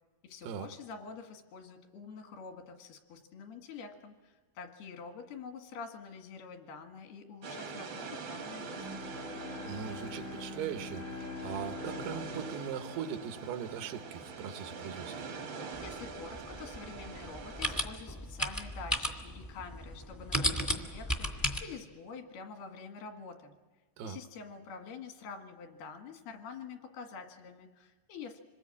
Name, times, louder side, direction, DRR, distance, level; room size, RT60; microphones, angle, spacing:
voice 1, 0.2-9.1 15.8-23.5 24.0-28.4, left 5 dB, 85° left, 5 dB, 3.8 m, -47 dB
sound 1, 7.4-17.8, right 4 dB, 70° right, 1.1 m, -44 dB
Bowed string instrument, 8.7-14.0, left 3 dB, 65° left, 0.7 m, -44 dB
voice 2, 9.7-15.3 24.0-24.2, right 8 dB, 90° right, 8 dB, 3.1 m, -40 dB
sound 2, 15.7-21.6, equal, 35° left, 0.3 m, -35 dB
26.5 x 20.5 x 8.5 m, 1.3 s
omnidirectional pair, 4.4 m